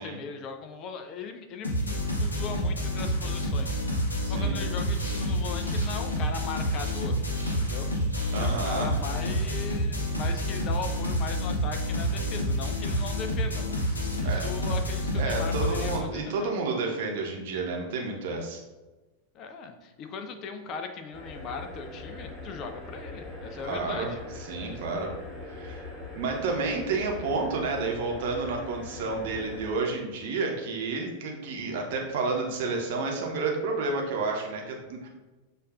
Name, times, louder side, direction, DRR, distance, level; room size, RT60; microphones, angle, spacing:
voice 1, 0.0-3.8 4.3-7.2 7.6-7.9 8.3-16.5 19.3-24.2, left 5 dB, 35° left, 6 dB, 0.4 m, -39 dB
sound 1, 1.6-16.0, equal, 75° left, 0.6 m, -28 dB
voice 2, 4.2-4.6 8.3-8.9 14.2-14.4 15.1-18.6 23.6-24.1 24.5-25.1 25.5-35.1, right 3 dB, 50° right, 1 dB, 0.8 m, -30 dB
sound 2, 4.8-7.0 7.3-9.9, right 1 dB, 85° right, 0.8 m, -49 dB
sound 3, 21.1-29.7, left 2 dB, 5° left, 1.1 m, -41 dB
6.3 x 2.5 x 2.4 m, 1.1 s
figure-of-eight pair, 90°, 0 cm